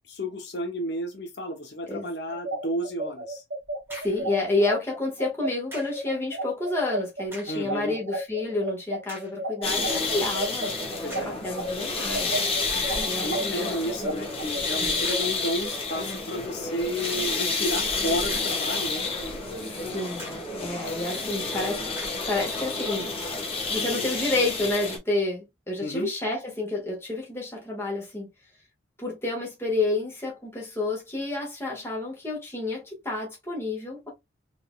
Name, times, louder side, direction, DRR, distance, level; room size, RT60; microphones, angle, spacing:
voice 1, 0.1-3.4 7.5-8.0 11.0-11.4 13.2-19.0 25.8-26.1, equal, 60° left, 0.8 m, -32 dB
sound 1, 2.3-11.7 12.1-15.2, right 1 dB, 60° right, 1.9 m, -32 dB
sound 2, 3.6-4.3 5.7-6.1 7.2-7.7 8.3-8.4 9.1-9.4 11.1-11.5 12.2-12.3 12.7-13.1 15.0-15.4 17.0-17.4 18.0-18.8 19.2-19.3 20.2-20.6 21.9-22.3, equal, 10° right, 1.8 m, -44 dB
voice 2, 4.0-10.7 11.3-12.4 13.0-14.3 14.8-15.0 19.6-21.8 22.3-23.1 23.7-28.3 29.0-34.1, left 2 dB, 15° left, 1.5 m, -30 dB
sound 3, 9.6-25.0, left 3 dB, 30° left, 1.2 m, -30 dB
3.9 x 3.5 x 2.2 m
head